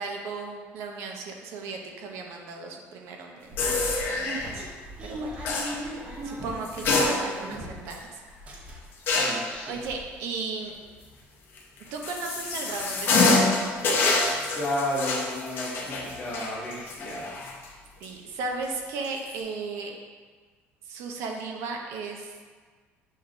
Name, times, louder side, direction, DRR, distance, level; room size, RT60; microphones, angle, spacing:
voice 1, 0.0-3.7 4.1-4.7 5.0-5.3 5.8-8.2 9.7-10.8 11.9-13.5 17.4-17.5 18.0-19.9 20.8-22.3, right 4 dB, 70° right, 2 dB, 0.5 m, -36 dB
sound 1, 3.5-8.0 8.3-9.1 9.5-9.6 9.8-10.0, right 1 dB, 25° right, 0.6 m, -38 dB
sound 2, 3.6-4.5 5.4-5.7 6.6-7.5 7.9-8.0 9.1-9.5 11.6-17.7 18.0-18.1 19.0-19.3, left 3 dB, 45° left, 0.6 m, -26 dB
voice 2, 9.1-9.8 14.5-17.4, left 1 dB, 25° left, -6 dB, 1.1 m, -32 dB
6.3 x 3.1 x 2.5 m, 1.5 s
cardioid pair, 170°, 5 cm